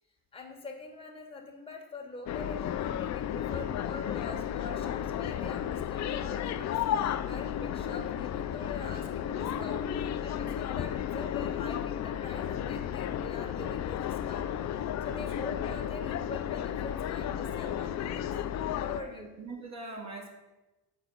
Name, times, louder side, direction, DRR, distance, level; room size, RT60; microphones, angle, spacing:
voice 1, 0.3-14.5 14.7-18.3 18.8-19.3, left 3 dB, 10° left, 1 dB, 1.3 m, -44 dB
sound 1, 2.3-19.0, left 10 dB, 35° left, 0.4 m, -33 dB
voice 2, 18.9-20.3, right 3 dB, 35° right, -1 dB, 1.3 m, -43 dB
6.2 x 4.7 x 5.2 m, 1.1 s
hypercardioid pair, 45°, 49 cm